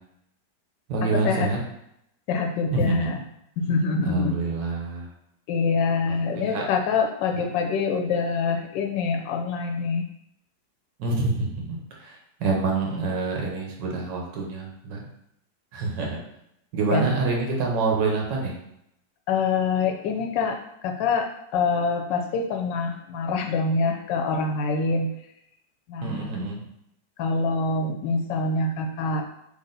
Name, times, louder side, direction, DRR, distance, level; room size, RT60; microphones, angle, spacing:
voice 1, 0.9-1.6 2.7-3.1 4.0-5.1 6.1-6.6 11.0-15.1 15.7-16.2 16.7-18.6 26.0-26.6, right 3 dB, 85° right, -1 dB, 1.6 m, -27 dB
voice 2, 2.3-3.2 3.6-4.3 5.5-10.1 16.9-17.0 19.3-21.3 21.5-25.1 25.9-26.3 27.2-29.2, left 4 dB, 90° left, 2 dB, 1.3 m, -25 dB
4.1 x 3.4 x 3.8 m, 0.79 s
omnidirectional pair, 1.9 m